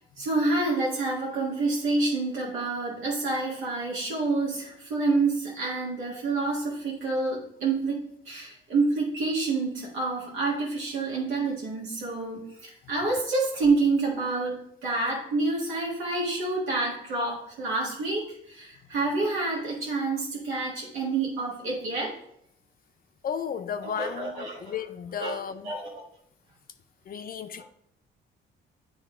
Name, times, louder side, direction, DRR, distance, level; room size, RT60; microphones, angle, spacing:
voice 1, 0.2-22.1 23.8-24.7 25.2-25.3 25.6-25.9 27.6-27.7, right 3 dB, 85° right, 1.5 m, -28 dB
voice 2, 23.2-25.7 27.1-27.6, left 7 dB, 45° left, 0.4 m, -34 dB
7.3 x 3.2 x 4.8 m
cardioid pair, 90°, 20 cm